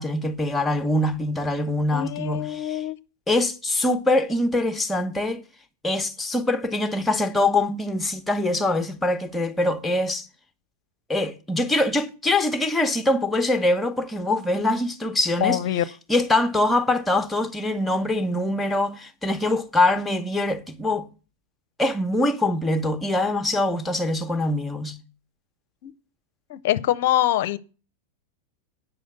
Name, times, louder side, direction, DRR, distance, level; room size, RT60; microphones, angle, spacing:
voice 1, 0.0-2.8 3.3-5.4 5.8-10.3 11.1-15.6 16.1-21.1 21.8-25.0, left 2 dB, 10° left, 1.1 m, -23 dB
voice 2, 1.9-3.0 15.4-15.8 25.8-25.9 26.5-27.6, left 12 dB, 50° left, 0.7 m, -24 dB
8.8 x 6.4 x 8.1 m
figure-of-eight pair, 90°, 0 cm